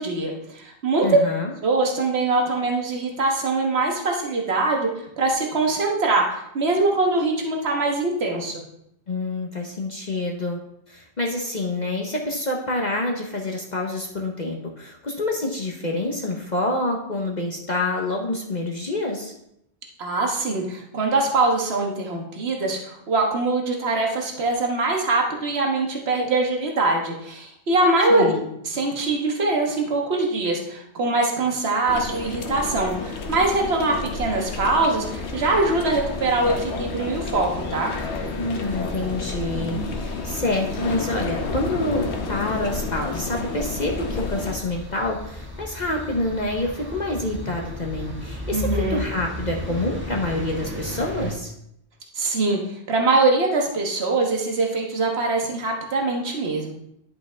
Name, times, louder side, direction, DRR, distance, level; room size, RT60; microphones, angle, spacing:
voice 1, 0.0-1.1 1.6-4.9 5.2-8.6 20.0-28.3 28.7-37.9 48.5-49.0 52.1-52.6 52.9-56.7, right 2 dB, 70° right, 1 dB, 1.6 m, -23 dB
voice 2, 1.0-1.5 9.1-10.6 10.9-19.3 28.1-28.5 38.4-51.5, left 2 dB, 45° left, 0 dB, 1.1 m, -27 dB
sound 1, 31.9-44.6, left 4 dB, 80° left, 1.2 m, -31 dB
sound 2, 35.0-51.3, left 1 dB, 10° right, 1.5 m, -36 dB
10.5 x 5.5 x 3.4 m, 0.76 s
omnidirectional pair, 1.1 m